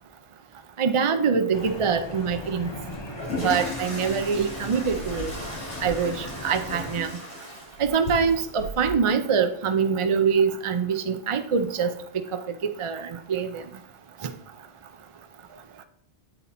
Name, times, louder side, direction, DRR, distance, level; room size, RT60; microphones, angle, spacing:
voice 1, 0.8-2.7 3.4-5.3 5.8-7.1 7.8-11.9 12.3-12.4 12.8-13.6, right 6 dB, 50° right, 8 dB, 0.4 m, -24 dB
sound 1, 1.5-7.0, left 1 dB, 25° left, 0.7 m, -39 dB
sound 2, 2.9-8.9, left 2 dB, 75° left, 3.3 m, -35 dB
8.9 x 4.2 x 4.1 m, 0.69 s
omnidirectional pair, 1.2 m